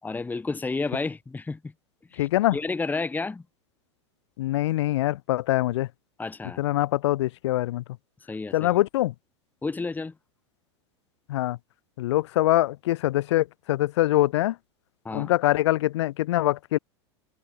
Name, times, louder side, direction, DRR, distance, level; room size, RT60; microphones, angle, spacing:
voice 1, 0.0-1.7 2.1-3.4 6.2-6.6 8.3-8.7 9.6-10.1 15.0-15.3, left 3 dB, 10° left, 1.4 m, -31 dB
voice 2, 2.2-2.6 4.4-5.9 6.6-7.8 8.5-9.1 11.3-11.6 12.0-14.6 15.1-16.8, left 15 dB, 70° left, 2.1 m, -24 dB
hypercardioid pair, 95°, 15 cm